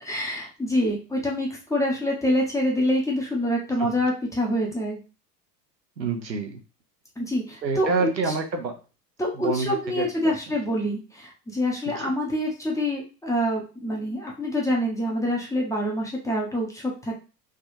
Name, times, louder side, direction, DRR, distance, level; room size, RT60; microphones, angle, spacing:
voice 1, 0.0-5.0 7.2-8.3 9.2-17.1, equal, 5° left, -2 dB, 0.7 m, -26 dB
voice 2, 6.0-6.6 7.6-8.8 9.4-10.1 11.9-12.1, right 4 dB, 90° right, 4 dB, 0.7 m, -27 dB
3.4 x 2.3 x 2.6 m, 0.33 s
figure-of-eight pair, 85°, 50 cm